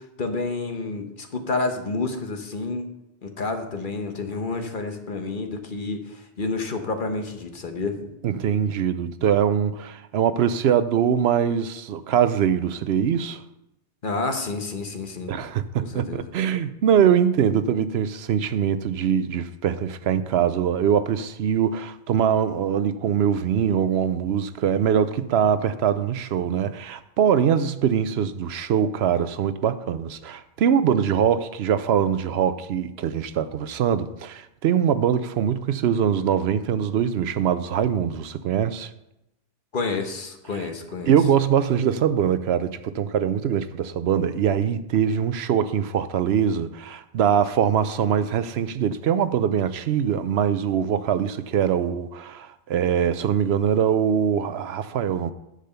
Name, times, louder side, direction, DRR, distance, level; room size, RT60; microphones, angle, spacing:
voice 1, 0.2-2.8 3.2-8.1 14.0-15.3 15.8-16.3 39.7-41.2, left 3 dB, 50° left, 1.1 m, -29 dB
voice 2, 8.2-13.4 15.3-38.9 40.5-40.7 41.1-55.3, right 8 dB, 70° right, 0.8 m, -23 dB
10.0 x 5.0 x 6.8 m
omnidirectional pair, 1.1 m